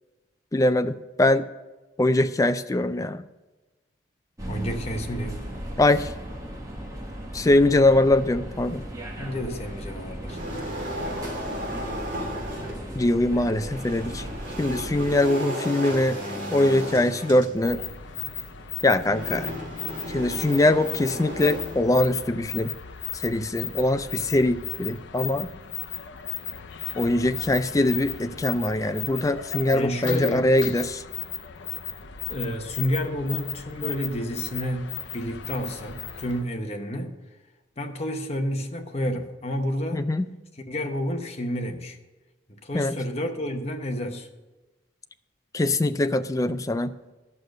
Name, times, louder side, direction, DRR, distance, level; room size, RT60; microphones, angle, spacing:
voice 1, 0.5-1.5 2.0-3.2 5.8-6.1 7.3-8.8 12.9-14.3 14.6-16.2 16.5-17.8 18.8-19.5 20.1-22.7 23.1-25.5 27.0-31.0 39.9-40.3 42.7-43.0 45.5-46.9, left 1 dB, 15° left, 11 dB, 0.3 m, -22 dB
sound 1, 4.4-15.2, right 1 dB, 20° right, 1.4 m, -36 dB
voice 2, 4.5-5.5 9.2-10.4 16.1-17.5 29.7-30.5 32.3-37.2 37.8-40.1 40.7-42.0 42.5-44.3, equal, 35° left, 4 dB, 1.0 m, -30 dB
sound 2, 10.3-12.9 13.5-22.4, equal, 45° right, 2.3 m, -35 dB
sound 3, 17.6-36.5, left 9 dB, 75° left, 0.6 m, -36 dB
11.0 x 6.5 x 6.4 m, 1.2 s
head